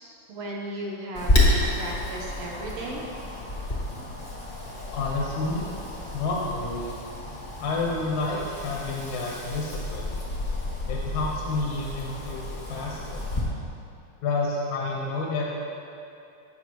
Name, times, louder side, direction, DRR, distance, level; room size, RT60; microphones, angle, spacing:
voice 1, 0.3-3.1, right 1 dB, 65° right, -2 dB, 1.9 m, -35 dB
Wind, 1.1-13.4, left 1 dB, 25° left, 1.2 m, -30 dB
voice 2, 4.9-5.7 6.1-7.0 7.6-10.1 10.9-13.3 14.2-15.4, left 3 dB, 80° left, -3 dB, 2.5 m, -29 dB
16.0 x 6.6 x 3.0 m, 2.6 s
omnidirectional pair, 3.3 m